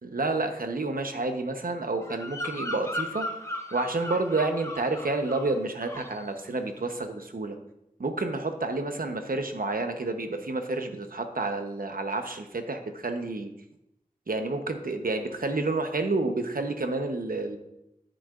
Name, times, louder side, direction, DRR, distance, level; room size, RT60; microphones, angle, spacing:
voice 1, 0.0-3.3 3.7-7.6 8.0-13.5 14.3-17.6, right 3 dB, 70° right, 6 dB, 0.9 m, -29 dB
Bird vocalization bird call bird song, 2.0-5.6 5.8-6.2, left 1 dB, 20° left, 0.9 m, -36 dB
10.0 x 9.4 x 2.5 m, 0.85 s
wide cardioid pair, 50°, 15 cm